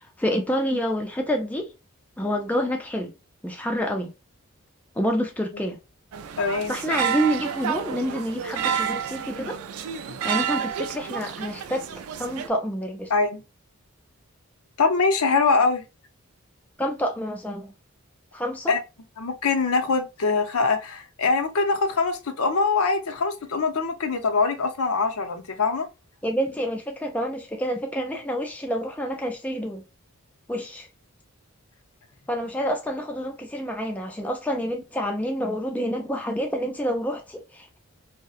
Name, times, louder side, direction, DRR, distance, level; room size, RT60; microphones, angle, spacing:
voice 1, 0.2-1.7 2.2-3.1 3.4-4.1 5.0-5.8 6.7-9.6 10.2-11.9 12.2-13.1 16.8-17.7 18.3-18.8 26.2-29.8 30.5-30.9 32.3-37.8, equal, 5° left, 0.3 m, -28 dB
sound 1, 6.1-12.5, right 7 dB, 80° right, 0.3 m, -30 dB
voice 2, 6.4-6.8 10.1-10.2 13.1-13.4 14.8-15.8 18.7-18.8 19.2-25.9, left 4 dB, 80° left, 0.6 m, -23 dB
2.6 x 2.1 x 2.3 m
head